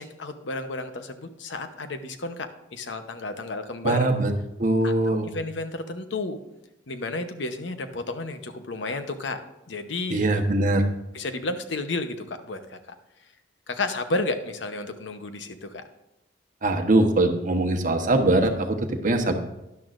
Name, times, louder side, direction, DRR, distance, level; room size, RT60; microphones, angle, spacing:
voice 1, 0.0-4.1 4.8-6.4 6.9-9.4 9.7-10.4 11.1-12.9 13.7-15.8, left 2 dB, 75° left, 8 dB, 0.9 m, -32 dB
voice 2, 3.8-4.3 4.6-5.3 10.1-10.8 16.6-19.3, right 2 dB, 45° right, 5 dB, 1.1 m, -22 dB
12.5 x 11.0 x 2.5 m, 0.90 s
head